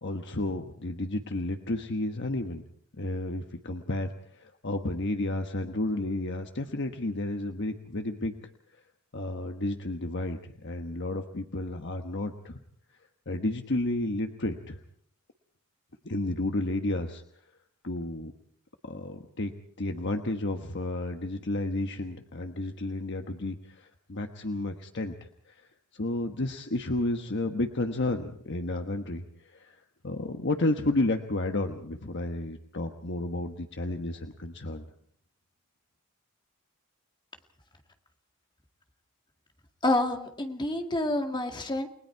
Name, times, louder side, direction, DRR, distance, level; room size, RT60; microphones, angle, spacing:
voice 1, 0.0-2.6 3.0-8.3 9.1-12.6 13.3-14.8 16.0-17.2 17.8-18.3 18.8-19.5 19.8-25.2 25.5-29.8 30.0-34.8, left 2 dB, 55° left, 5 dB, 1.3 m, -32 dB
voice 2, 39.8-41.9, left 1 dB, 20° left, 4 dB, 2.1 m, -28 dB
30.0 x 20.5 x 4.7 m, 0.64 s
head